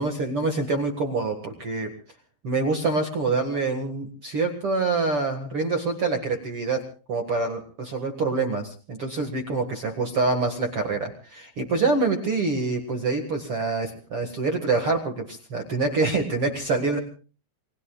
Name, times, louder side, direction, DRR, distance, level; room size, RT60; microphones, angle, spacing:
voice 1, 0.0-1.9 2.4-17.0, right 3 dB, 60° right, 4 dB, 1.4 m, -26 dB
29.0 x 21.0 x 2.3 m, 0.37 s
omnidirectional pair, 5.2 m